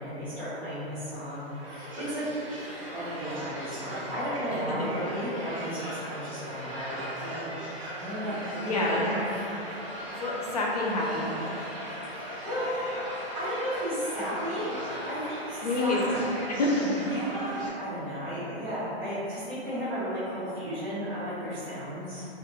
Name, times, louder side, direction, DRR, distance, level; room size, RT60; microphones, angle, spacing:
voice 1, 0.0-2.3 2.9-7.5 8.0-9.4 12.0-12.7 13.3-14.7 15.1-16.3 17.1-22.3, equal, 5° left, -16 dB, 1.1 m, -34 dB
sound 1, 1.2-17.7, equal, 30° right, 0.5 m, -38 dB
voice 2, 8.6-9.3 10.2-11.6 15.6-16.0 16.5-16.9, left 2 dB, 40° left, -3 dB, 0.4 m, -28 dB
2.7 x 2.5 x 3.3 m, 3.0 s
hypercardioid pair, 175°, 33 cm